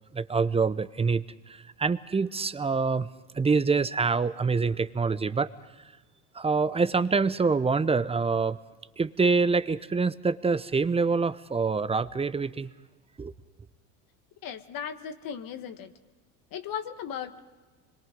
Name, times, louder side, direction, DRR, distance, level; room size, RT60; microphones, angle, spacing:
voice 1, 0.1-3.1 3.3-5.5 6.3-8.6 9.0-12.7 13.2-13.3, right 4 dB, 15° right, 15 dB, 0.7 m, -26 dB
voice 2, 14.4-15.9 16.5-17.4, left 8 dB, 50° left, 8 dB, 1.6 m, -37 dB
26.0 x 22.0 x 5.2 m, 1.3 s
hypercardioid pair, 90°, 43 cm